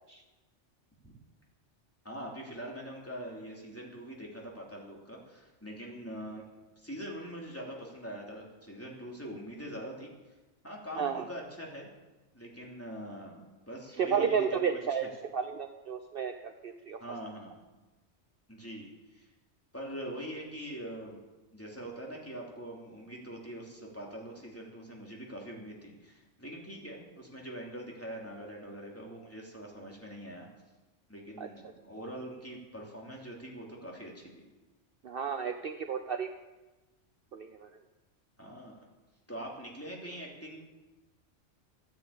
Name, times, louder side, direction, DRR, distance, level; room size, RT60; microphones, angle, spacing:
voice 1, 2.0-6.5 6.8-10.1 10.6-11.9 12.3-14.6 14.9-15.1 17.0-17.6 18.5-19.3 19.7-21.2 21.5-30.5 31.1-34.4 38.4-38.9 39.3-40.6, equal, 10° left, -2 dB, 3.1 m, -43 dB
voice 2, 14.0-17.0 31.4-31.5 35.0-36.3 37.3-37.7, right 6 dB, 55° right, 7 dB, 0.9 m, -32 dB
13.5 x 9.8 x 8.7 m, 1.1 s
omnidirectional pair, 1.2 m